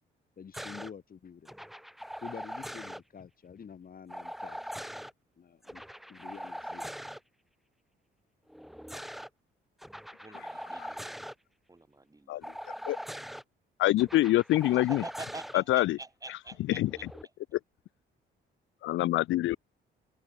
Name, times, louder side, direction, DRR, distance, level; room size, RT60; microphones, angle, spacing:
voice 1, 0.4-1.5 2.2-4.6 5.4-5.8 6.1-6.9, left 7 dB, 45° left, 3.9 m, -47 dB
sound 1, 0.5-0.9 1.5-3.0 4.1-5.1 5.6-7.2 8.5-9.3 9.8-11.3 12.4-13.4 14.0-15.5 16.8-17.2, equal, ahead, 0.5 m, -41 dB
voice 2, 10.2-11.2 11.7-12.5 14.7-17.1, right 2 dB, 15° right, 7.4 m, -46 dB
voice 3, 13.8-15.0 15.5-16.0 16.7-16.9 18.8-19.6, left 16 dB, 80° left, 0.6 m, -25 dB
cardioid pair, 90°, 20 cm